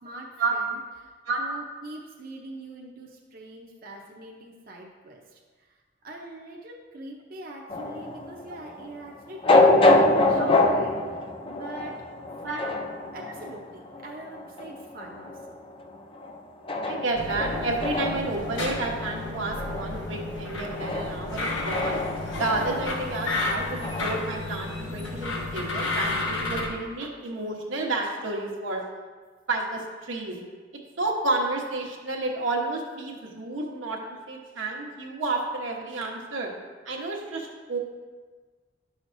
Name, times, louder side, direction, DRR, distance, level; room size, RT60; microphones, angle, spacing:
voice 1, 0.0-11.2 11.5-12.0 12.4-12.8 13.1-15.6, right 2 dB, 50° right, -2 dB, 0.7 m, -43 dB
sound 1, 7.7-24.2, left 2 dB, 30° left, 0.5 m, -26 dB
voice 2, 16.8-22.0 22.3-28.8 29.5-30.4 31.0-34.0 34.3-36.5 36.8-37.8, right 2 dB, 85° right, -1 dB, 1.2 m, -30 dB
sound 2, 17.1-26.7, left 2 dB, 80° left, 1.3 m, -32 dB
10.5 x 6.3 x 2.6 m, 1.4 s
head